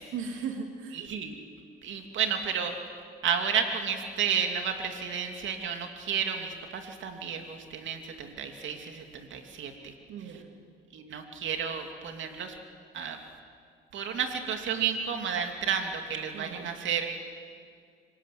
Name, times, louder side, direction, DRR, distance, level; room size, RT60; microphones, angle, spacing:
voice 1, 0.1-1.1 10.1-10.5 16.3-16.7, right 6 dB, 90° right, 3 dB, 2.7 m, -37 dB
voice 2, 0.9-1.4 1.8-2.8 3.2-9.9 10.9-12.6 12.9-13.2 13.9-17.2, right 7 dB, 75° right, 4 dB, 2.8 m, -32 dB
26.0 x 23.5 x 9.5 m, 2.1 s
cardioid pair, 90°, 20 cm